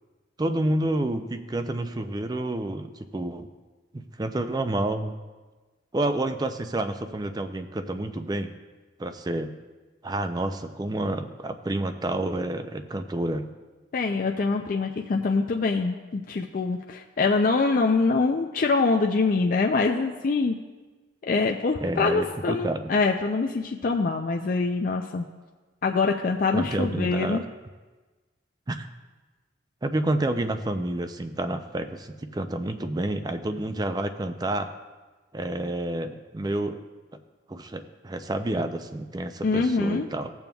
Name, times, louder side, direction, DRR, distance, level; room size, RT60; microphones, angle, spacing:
voice 1, 0.4-3.5 3.9-5.2 5.9-8.5 9.0-9.5 10.0-13.5 21.8-22.9 26.5-27.4 28.7-28.9 29.8-34.7 35.3-36.8 37.5-40.3, right 1 dB, 20° right, 8 dB, 0.4 m, -29 dB
voice 2, 13.9-20.6 21.2-25.3 25.8-27.4 39.4-40.1, left 4 dB, 45° left, 3 dB, 0.4 m, -24 dB
17.0 x 7.0 x 2.3 m, 1.3 s
head